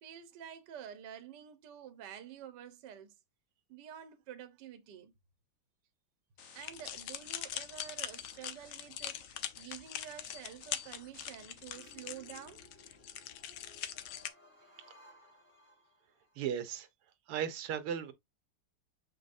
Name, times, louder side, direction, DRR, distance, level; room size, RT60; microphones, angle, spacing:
voice 1, 0.0-3.1 3.7-5.1 6.5-12.6, right 9 dB, 60° right, 1.5 m, -49 dB
sound 1, 6.4-11.7, left 6 dB, 45° left, 1.1 m, -58 dB
sound 2, 6.6-14.3, left 11 dB, 75° left, 1.5 m, -42 dB
sound 3, 11.7-16.4, left 1 dB, 5° left, 1.5 m, -60 dB
voice 2, 16.4-16.9 17.3-18.1, right 8 dB, 85° right, 1.9 m, -36 dB
7.2 x 5.2 x 2.6 m
omnidirectional pair, 2.4 m